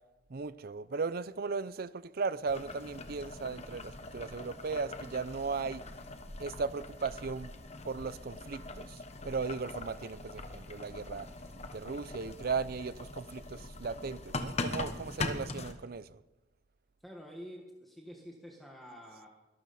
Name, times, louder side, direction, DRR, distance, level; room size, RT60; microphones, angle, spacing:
voice 1, 0.3-5.8 6.4-7.5 7.8-9.0 9.2-11.3 11.7-16.2, right 4 dB, 55° right, 0.5 m, -37 dB
Boiling, 2.5-15.7, left 2 dB, 35° left, 1.1 m, -42 dB
voice 2, 17.0-19.3, equal, ahead, 1.5 m, -48 dB
22.0 x 12.5 x 4.2 m
head